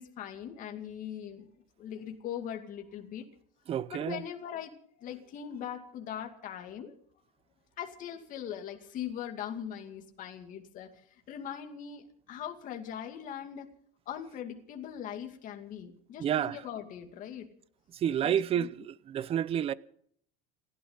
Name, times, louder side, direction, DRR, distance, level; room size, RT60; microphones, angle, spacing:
voice 1, 0.0-1.5 1.8-3.3 3.9-7.0 7.8-13.7 14.1-17.5 18.2-18.7, left 9 dB, 40° left, 2.5 m, -41 dB
voice 2, 3.7-4.2 16.2-16.6 17.9-19.7, right 10 dB, 30° right, 0.6 m, -30 dB
30.0 x 12.0 x 4.0 m
cardioid pair, 145°, 20 cm